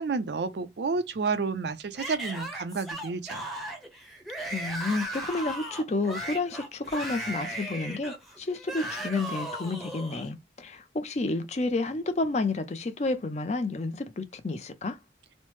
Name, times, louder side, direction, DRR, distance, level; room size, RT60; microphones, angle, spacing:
voice 1, 0.0-3.5, right 4 dB, 75° right, 0.4 m, -30 dB
Yell / Screaming, 2.0-10.3, right 1 dB, ahead, 0.7 m, -37 dB
voice 2, 4.5-15.0, left 3 dB, 40° left, 0.5 m, -30 dB
3.1 x 2.0 x 3.1 m
head